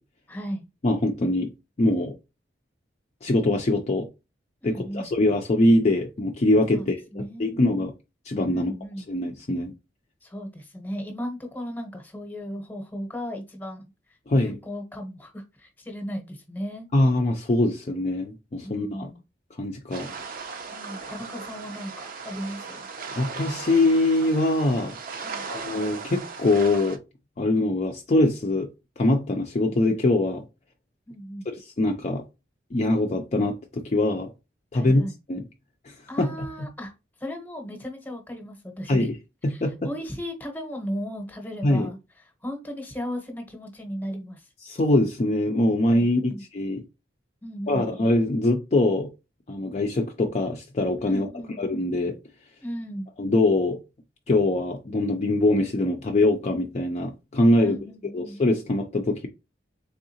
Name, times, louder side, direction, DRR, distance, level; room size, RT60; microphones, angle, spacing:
voice 1, 0.3-0.7 4.6-5.1 6.7-6.8 7.1-7.6 8.5-9.1 10.2-13.8 14.3-16.9 18.6-19.2 20.7-22.9 25.2-25.4 31.1-31.5 34.7-35.2 36.1-36.9 37.2-39.1 39.5-42.0 42.4-44.5 46.3-46.4 47.4-47.9 51.1-51.6 52.6-53.1 57.6-58.4, equal, 10° left, 0.9 m, -36 dB
voice 2, 0.8-1.5 1.8-2.1 3.2-4.1 4.6-7.9 8.3-8.7 9.1-9.7 14.3-14.6 16.9-19.1 19.6-20.1 23.2-25.0 25.5-27.0 27.4-28.7 29.0-30.4 31.5-32.2 32.7-34.3 34.7-35.0 35.3-35.4 35.9-36.7 38.9-39.1 39.4-39.9 41.6-41.9 44.6-46.8 47.7-49.1 49.5-52.2 53.2-53.8 54.3-57.8 58.1-59.3, left 2 dB, 40° left, 0.4 m, -23 dB
sound 1, 19.9-27.0, right 5 dB, 50° right, 0.6 m, -37 dB
3.7 x 3.4 x 2.8 m
head